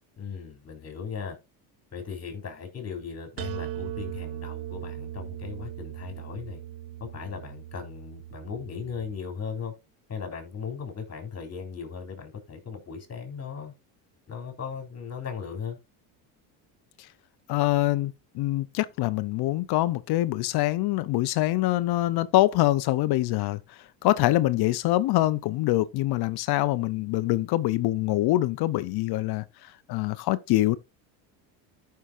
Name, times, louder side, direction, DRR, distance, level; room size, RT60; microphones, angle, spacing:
voice 1, 0.2-1.4 1.9-6.6 7.0-9.7 10.1-13.7 14.3-15.8, left 6 dB, 30° left, 3.6 m, -37 dB
sound 1, 3.4-9.2, right 13 dB, 85° right, 0.7 m, -38 dB
voice 2, 17.5-23.6 24.0-29.4 29.9-30.8, left 16 dB, 55° left, 0.6 m, -24 dB
14.0 x 5.7 x 2.5 m
supercardioid pair, 105°, 47 cm